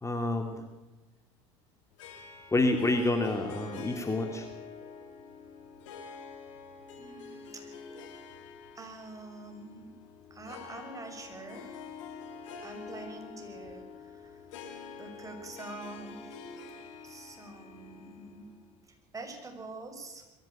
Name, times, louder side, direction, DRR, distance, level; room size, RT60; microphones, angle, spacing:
voice 1, 0.0-0.6 2.5-4.5, left 2 dB, 20° left, 5 dB, 2.4 m, -28 dB
Harp, 2.0-18.7, left 5 dB, 85° left, 3.2 m, -46 dB
voice 2, 7.0-8.1 8.7-9.9 10.3-12.0 12.6-14.4 15.0-16.6 17.0-18.5 19.1-20.2, right 3 dB, 20° right, 4 dB, 6.1 m, -46 dB
22.0 x 15.0 x 9.1 m, 1.1 s
supercardioid pair, 90°, 16 cm